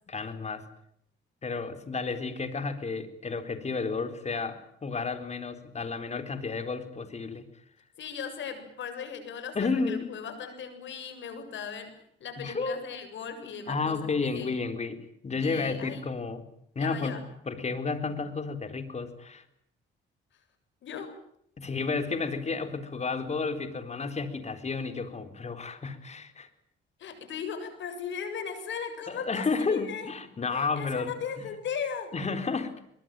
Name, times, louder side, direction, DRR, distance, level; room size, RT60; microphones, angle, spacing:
voice 1, 0.1-0.6 1.4-7.5 9.5-10.1 12.4-12.8 13.7-16.4 16.8-17.2 17.5-19.4 21.6-26.5 29.1-31.5 32.1-32.8, left 4 dB, 35° left, 9 dB, 4.2 m, -32 dB
voice 2, 8.0-11.9 12.2-14.5 15.4-16.0 16.8-17.2 20.8-21.1 27.0-30.1 30.5-32.1, left 7 dB, 70° left, 9 dB, 7.8 m, -38 dB
23.0 x 22.5 x 9.2 m, 0.71 s
cardioid pair, 90°, 20 cm